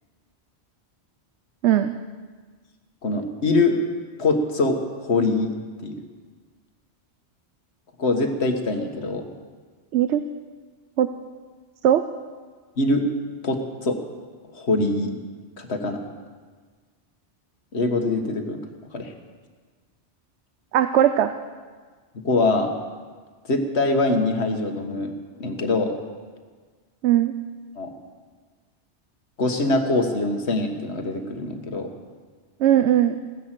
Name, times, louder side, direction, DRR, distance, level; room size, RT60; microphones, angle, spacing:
voice 1, 1.6-1.9 9.9-10.2 11.0-11.1 11.8-12.0 20.7-21.3 27.0-27.3 32.6-33.2, right 11 dB, 85° right, 10 dB, 0.9 m, -18 dB
voice 2, 3.0-3.8 4.2-5.5 5.8-6.0 8.0-9.2 12.8-13.1 13.4-14.0 14.5-15.1 15.6-16.0 17.7-18.6 18.9-19.1 22.2-22.7 23.5-25.1 25.4-25.9 27.8-27.9 29.4-31.9, left 2 dB, 75° left, 5 dB, 1.8 m, -23 dB
16.5 x 11.0 x 7.6 m, 1.5 s
omnidirectional pair, 1.1 m